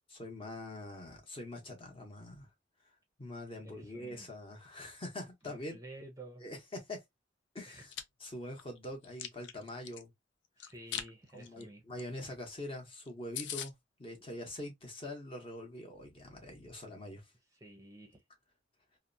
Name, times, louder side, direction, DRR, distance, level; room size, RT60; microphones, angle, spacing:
voice 1, 0.0-2.5 3.2-5.8 6.4-7.0 7.5-7.9 8.2-10.1 11.3-13.7 14.0-17.3, left 1 dB, 30° left, 0.9 m, -44 dB
voice 2, 3.6-4.4 5.4-6.4 7.7-7.9 10.6-11.8 17.5-18.2, right 1 dB, 20° right, 0.6 m, -52 dB
Chewing mastication, 7.7-8.0 8.5-10.0 10.6-11.1 11.4-11.6 12.0-12.1 12.3-12.4 12.8-12.9 13.1-13.2 13.3-13.7, left 9 dB, 75° left, 0.4 m, -40 dB
2.8 x 2.0 x 2.5 m
head